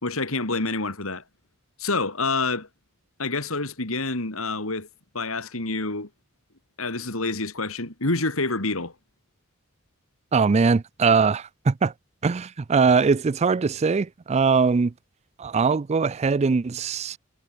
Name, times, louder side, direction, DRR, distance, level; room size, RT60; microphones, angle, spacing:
voice 1, 0.0-1.2 1.8-2.7 3.2-4.9 5.1-6.1 6.8-8.9, left 3 dB, 70° left, 3.6 m, -27 dB
voice 2, 10.3-11.9 12.2-14.9 15.4-17.2, right 5 dB, 30° right, 0.4 m, -21 dB
head